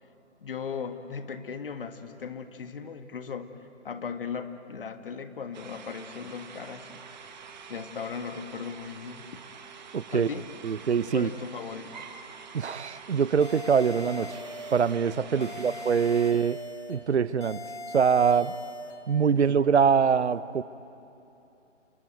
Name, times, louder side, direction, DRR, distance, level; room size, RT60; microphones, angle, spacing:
voice 1, 0.4-3.5 3.8-7.4 7.7-9.4 10.1-10.5 11.1-12.1 15.3-15.8 19.3-19.5, left 6 dB, 50° left, 8 dB, 1.7 m, -38 dB
sound 1, 5.5-16.3, right 6 dB, 40° right, 1.9 m, -46 dB
voice 2, 9.9-10.3 10.6-11.3 12.5-14.4 14.7-16.6 16.9-17.6 17.9-18.6 19.1-20.6, right 6 dB, 65° right, 17 dB, 0.8 m, -24 dB
sound 2, 13.4-15.0 15.4-17.0 17.4-19.0, left 1 dB, 70° left, 4.1 m, -40 dB
29.0 x 20.0 x 9.3 m, 2.8 s
figure-of-eight pair, 150°, 36 cm